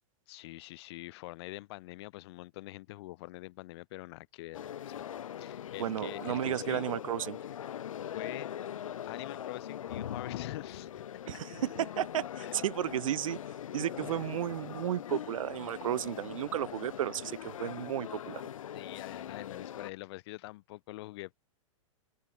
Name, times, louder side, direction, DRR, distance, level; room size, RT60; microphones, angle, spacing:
voice 1, 0.3-5.1 5.4-6.9 8.0-8.5 9.1-11.0 11.3-11.4 12.4-12.5 14.0-14.3 18.7-21.4, left 20 dB, 50° left, 7.6 m, -45 dB
sound 1, 4.5-19.9, left 10 dB, 85° left, 1.4 m, -41 dB
voice 2, 5.8-7.4 11.3-13.4 13.7-18.4, right 11 dB, 90° right, 0.5 m, -33 dB
open air
hypercardioid pair, 145°, 17 cm